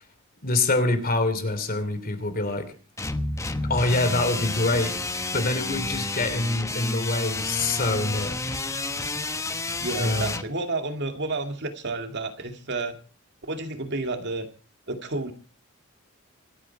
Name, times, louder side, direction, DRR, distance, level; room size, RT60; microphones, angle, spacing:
voice 1, 0.4-2.7 3.7-5.0 5.3-8.6 10.0-10.4, left 2 dB, 45° left, 9 dB, 3.0 m, -25 dB
sound 1, 3.0-10.4, left 2 dB, 15° left, 0.9 m, -30 dB
voice 2, 9.8-12.9 13.4-14.5 14.9-15.3, right 2 dB, 55° right, 6 dB, 2.4 m, -30 dB
26.5 x 8.9 x 4.7 m, 0.37 s
head